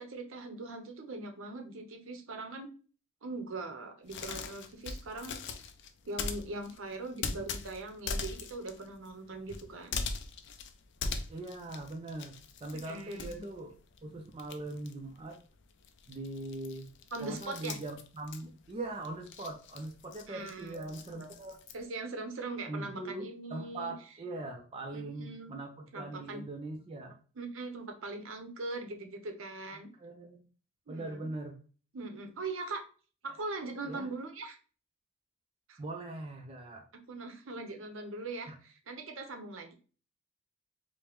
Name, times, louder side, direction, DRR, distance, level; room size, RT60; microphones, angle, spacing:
voice 1, 0.0-2.7 3.2-5.4 6.1-10.0 12.8-13.4 17.1-17.8 20.3-21.3 21.7-23.9 24.9-25.5 25.9-26.4 27.4-29.9 30.9-31.3 31.9-32.8 33.2-34.6 35.7-35.8 37.1-39.7, right 2 dB, 65° right, 5 dB, 0.7 m, -41 dB
sound 1, 4.1-14.1 14.3-21.8, left 4 dB, 55° left, 0.4 m, -41 dB
voice 2, 11.3-13.7 14.0-15.4 16.1-16.9 17.2-21.6 22.7-27.2 29.7-30.5 30.9-31.6 33.9-34.1 35.8-36.9 38.5-38.6, right 2 dB, 25° right, 2 dB, 0.4 m, -41 dB
4.9 x 2.1 x 3.0 m, 0.38 s
head